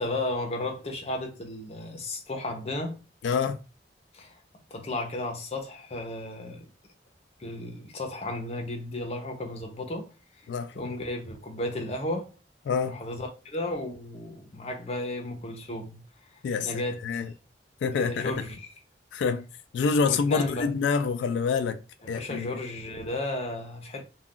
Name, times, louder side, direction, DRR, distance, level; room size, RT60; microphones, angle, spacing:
voice 1, 0.0-3.0 4.1-4.3 4.7-6.7 7.4-10.1 10.7-12.3 12.9-16.0 16.6-17.2 17.9-18.7 20.0-20.7 22.0-24.0, left 1 dB, 35° left, 0.6 m, -34 dB
voice 2, 3.2-3.6 10.5-10.9 12.7-13.0 16.4-16.7 17.0-17.3 17.8-18.4 19.1-19.5 19.7-21.8 22.1-22.6, left 5 dB, 90° left, 0.3 m, -27 dB
2.4 x 2.2 x 3.6 m
head